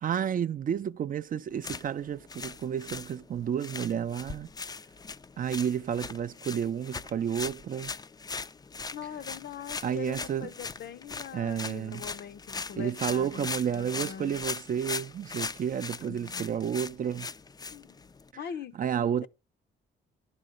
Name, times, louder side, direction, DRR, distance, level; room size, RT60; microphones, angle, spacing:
voice 1, 0.0-4.5 5.4-7.9 9.8-10.5 11.3-12.0 12.8-17.3 18.8-19.3, right 8 dB, 45° right, 0.4 m, -31 dB
sound 1, 1.5-18.3, left 4 dB, 20° left, 0.4 m, -40 dB
voice 2, 8.9-14.4 16.1-16.6 17.7-18.0 18.3-18.8, left 8 dB, 60° left, 0.6 m, -42 dB
11.5 x 3.9 x 6.4 m
cardioid pair, 90°, 20 cm